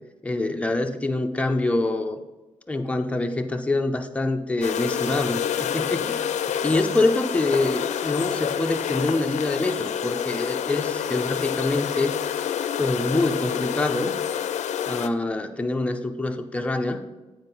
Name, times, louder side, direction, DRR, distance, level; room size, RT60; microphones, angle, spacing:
voice 1, 0.2-2.2 2.7-6.2 6.6-12.1 12.8-14.2 14.9-17.0, left 2 dB, 10° left, 5 dB, 0.6 m, -25 dB
sound 1, 4.6-15.1, left 9 dB, 75° left, 0.5 m, -28 dB
9.5 x 4.9 x 5.5 m, 1.2 s
wide cardioid pair, 135°, 12 cm